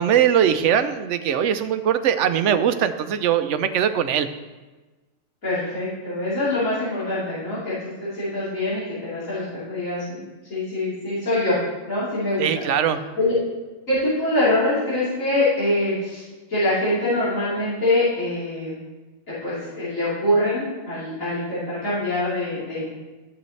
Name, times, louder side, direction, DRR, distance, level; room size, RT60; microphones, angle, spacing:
voice 1, 0.0-4.3 12.4-13.0, right 9 dB, 70° right, 10 dB, 0.9 m, -21 dB
voice 2, 5.4-10.2 10.5-11.6 11.9-12.5 13.2-13.3 13.9-18.7 19.4-22.8, left 1 dB, 85° left, -13 dB, 3.8 m, -24 dB
11.5 x 7.8 x 3.2 m, 1.2 s
omnidirectional pair, 1.4 m